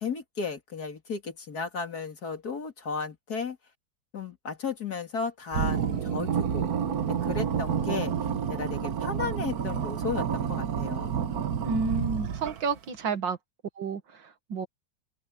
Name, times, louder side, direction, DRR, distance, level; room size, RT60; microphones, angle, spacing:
voice 1, 0.0-3.6 4.1-6.7 7.1-8.1 8.5-11.1, left 5 dB, 55° left, 3.0 m, -34 dB
sound 1, 5.5-12.8, right 7 dB, 60° right, 1.6 m, -29 dB
voice 2, 11.6-13.4 13.8-14.7, right 4 dB, 85° right, 2.4 m, -31 dB
omnidirectional pair, 2.0 m